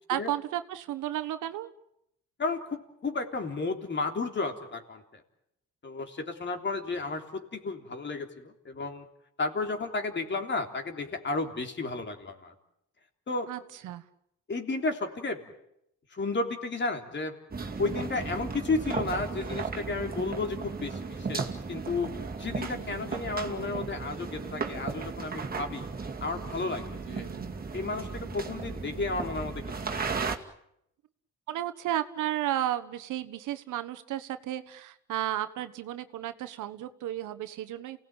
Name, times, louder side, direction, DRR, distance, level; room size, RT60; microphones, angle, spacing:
voice 1, 0.1-1.7 13.5-14.0 17.9-18.0 22.6-23.0 27.1-27.5 31.5-38.0, right 13 dB, 85° right, 11 dB, 1.4 m, -33 dB
voice 2, 2.4-5.2 5.8-9.1 9.4-12.5 13.3-13.5 14.5-15.4 16.1-17.4 17.8-22.1 22.4-25.9 26.2-27.3 27.7-30.3, left 3 dB, 40° left, 5 dB, 3.5 m, -33 dB
sound 1, 17.5-30.4, right 4 dB, 30° right, 2.4 m, -35 dB
28.5 x 18.0 x 9.0 m, 0.79 s
cardioid pair, 90°, 30 cm